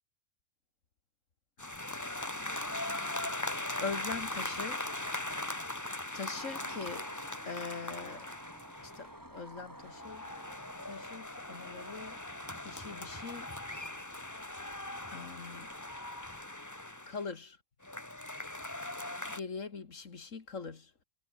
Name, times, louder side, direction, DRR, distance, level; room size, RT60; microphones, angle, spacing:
sound 1, 1.6-9.1 9.8-17.3 17.8-19.4, left 1 dB, 10° left, 1.7 m, -40 dB
voice 1, 3.1-4.9 6.1-7.1 7.4-8.3 8.8-10.3 10.8-12.2 12.5-13.5 15.1-15.7 17.1-17.6 19.3-21.0, left 4 dB, 50° left, 2.3 m, -42 dB
Skateboard, 6.3-16.5, equal, 10° right, 6.3 m, -52 dB
omnidirectional pair, 1.7 m